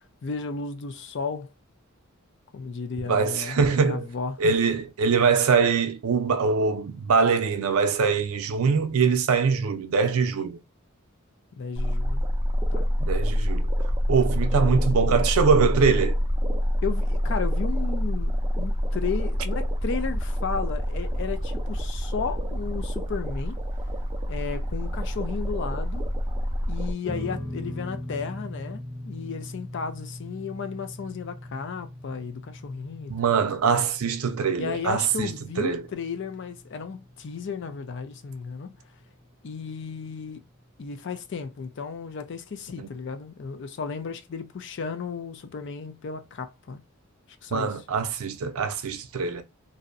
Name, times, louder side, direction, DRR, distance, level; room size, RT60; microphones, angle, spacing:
voice 1, 0.2-1.5 2.5-4.6 11.5-12.2 12.7-12.9 14.7-14.9 16.8-23.6 24.3-26.0 26.7-33.4 34.6-38.8 39.4-40.4 40.8-46.8 47.4-47.7, left 5 dB, 55° left, 0.4 m, -34 dB
voice 2, 3.1-4.1 4.4-10.6 13.0-13.7 14.1-16.2 33.1-35.8 42.8-42.9 47.5-49.4, right 5 dB, 85° right, 0.5 m, -23 dB
sound 1, 11.7-26.9, equal, 20° right, 0.4 m, -26 dB
sound 2, 27.0-39.6, left 1 dB, 20° left, 0.8 m, -41 dB
2.6 x 2.0 x 2.5 m
head